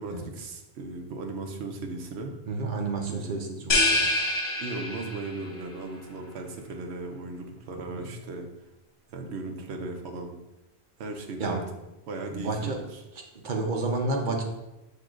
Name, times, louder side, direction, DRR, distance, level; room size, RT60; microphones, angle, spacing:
voice 1, 0.0-2.3 3.1-3.7 4.6-8.5 9.1-10.4 11.0-11.6 12.1-13.0, right 3 dB, 85° right, 4 dB, 1.0 m, -37 dB
voice 2, 2.5-4.1 8.0-8.1 11.4-11.6 12.3-12.8 13.4-14.4, right 3 dB, 55° right, 2 dB, 0.8 m, -30 dB
sound 1, 3.7-5.4, left 2 dB, 60° left, 0.8 m, -25 dB
7.7 x 2.8 x 2.4 m, 0.97 s
omnidirectional pair, 1.1 m